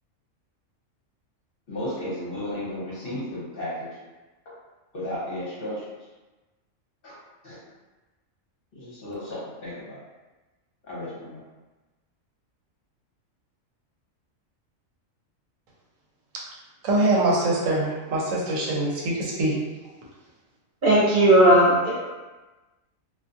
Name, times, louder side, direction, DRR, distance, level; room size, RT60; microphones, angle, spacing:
voice 1, 1.7-3.9 4.9-5.8 7.0-7.2 7.4-7.6 8.7-10.0 10.8-11.4, left 1 dB, 50° left, -8 dB, 1.1 m, -33 dB
voice 2, 16.8-19.5, right 2 dB, 75° right, -3 dB, 1.0 m, -23 dB
voice 3, 20.8-21.9, right 1 dB, 50° right, -8 dB, 0.7 m, -16 dB
2.5 x 2.3 x 2.5 m, 1.2 s
omnidirectional pair, 1.4 m